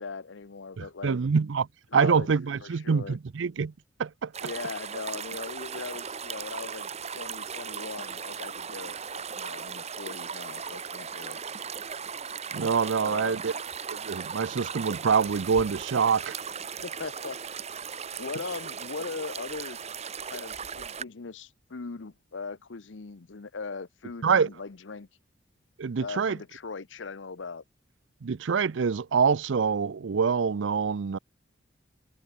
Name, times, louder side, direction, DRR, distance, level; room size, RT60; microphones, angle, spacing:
voice 1, 0.0-1.2 1.9-2.3 2.6-3.2 4.4-11.4 13.0-13.5 16.8-17.4 18.2-19.8 20.3-25.1 26.0-27.6, left 4 dB, 75° left, 0.8 m, -39 dB
voice 2, 0.8-1.7 1.9-3.7 4.0-4.3 12.5-13.5 13.9-16.3 24.2-24.5 25.8-26.4 28.2-31.2, right 5 dB, 75° right, 0.5 m, -25 dB
sound 1, 4.3-21.0, right 6 dB, 35° right, 1.3 m, -37 dB
head